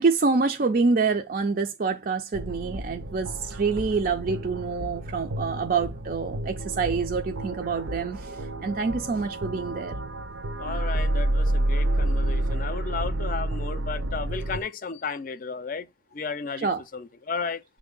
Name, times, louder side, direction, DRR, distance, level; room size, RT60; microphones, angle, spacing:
voice 1, 0.0-10.0 16.6-16.8, right 4 dB, 45° right, 0.4 m, -26 dB
sound 1, 2.3-14.6, right 1 dB, 85° right, 0.8 m, -29 dB
voice 2, 10.6-15.9 16.1-16.7 16.9-17.6, left 5 dB, 45° left, 0.5 m, -33 dB
7.2 x 2.7 x 5.2 m
head